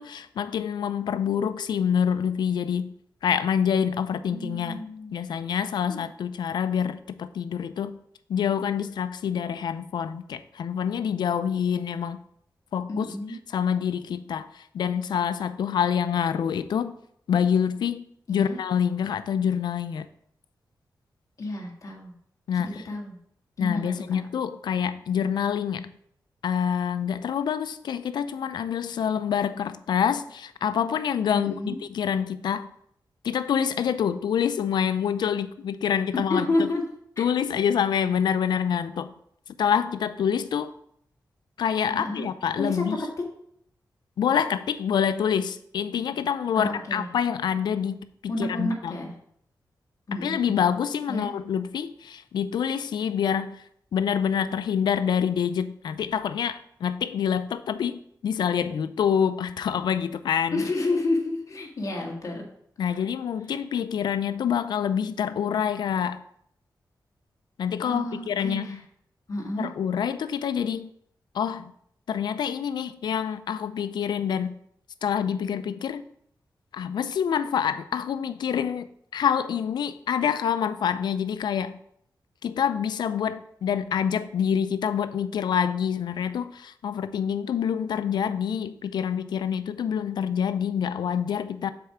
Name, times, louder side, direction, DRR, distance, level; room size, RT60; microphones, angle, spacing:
voice 1, 0.0-2.9 3.2-4.8 5.1-8.0 8.3-12.2 12.7-13.1 13.5-16.9 17.3-20.1 22.5-22.8 23.6-25.9 26.4-32.7 33.2-36.7 37.2-39.1 39.6-40.7 41.6-43.0 44.2-49.0 50.1-53.6 53.9-60.6 62.8-66.2 67.6-68.8 69.6-70.9 71.3-71.7 72.1-74.6 75.0-76.0 76.7-81.8 82.4-91.7, left 8 dB, 90° left, 13 dB, 0.4 m, -26 dB
voice 2, 4.3-5.1 5.9-6.1 12.9-13.4 18.3-18.6 21.4-22.1 22.5-23.2 23.6-23.9 31.3-31.8 36.3-36.8 37.2-37.3 41.9-42.3 42.6-42.8 43.2-43.3 46.5-47.1 48.3-49.1 50.1-50.5 51.1-51.3 60.5-62.5 62.9-63.0 67.8-68.8 69.3-69.7, left 2 dB, 50° left, 0 dB, 1.8 m, -30 dB
6.8 x 4.4 x 4.8 m, 0.69 s
cardioid pair, 85°, 7 cm